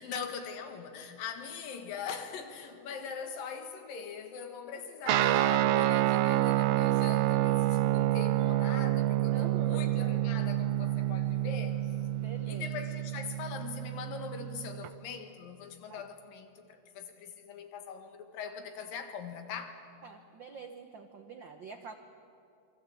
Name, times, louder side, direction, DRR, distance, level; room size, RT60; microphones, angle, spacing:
voice 1, 0.0-11.8 12.5-19.8, left 6 dB, 80° left, 3.5 m, -42 dB
Guitar, 5.1-14.9, right 14 dB, 90° right, 1.4 m, -28 dB
voice 2, 9.3-9.8 12.1-12.7 15.9-16.1 20.0-21.9, right 5 dB, 75° right, 1.1 m, -46 dB
27.5 x 23.5 x 8.5 m
omnidirectional pair, 3.9 m